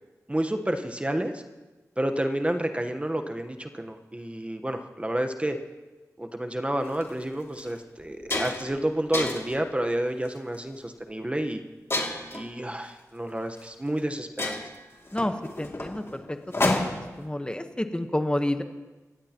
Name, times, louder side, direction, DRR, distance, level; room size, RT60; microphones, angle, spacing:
voice 1, 0.3-1.4 2.0-5.6 6.2-11.6 12.3-14.6, right 1 dB, 20° right, 6 dB, 1.1 m, -30 dB
sound 1, 6.9-7.0 7.6-7.7 8.0-8.7 9.1-9.6 10.3-10.6 11.9-12.4 13.6-13.7 14.0-14.1 14.4-17.2, left 2 dB, 45° left, 2.5 m, -29 dB
voice 2, 15.1-16.4 16.6-16.9 17.2-18.6, left 1 dB, 15° left, 7 dB, 1.1 m, -29 dB
21.5 x 16.0 x 3.0 m, 1.2 s
cardioid pair, 50°, 6 cm